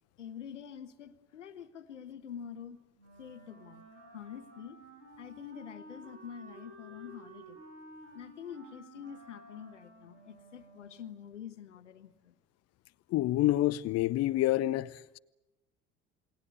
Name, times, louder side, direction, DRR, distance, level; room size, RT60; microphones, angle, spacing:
voice 1, 0.2-2.8 3.2-3.8 4.1-4.8 5.2-7.6 8.1-12.3, left 8 dB, 75° left, 1.4 m, -46 dB
Wind instrument woodwind instrument, 3.0-11.2, right 1 dB, 80° right, 7.9 m, -53 dB
voice 2, 13.1-14.9, left 15 dB, 45° left, 0.9 m, -27 dB
28.5 x 21.5 x 8.3 m
figure-of-eight pair, 60°, 36 cm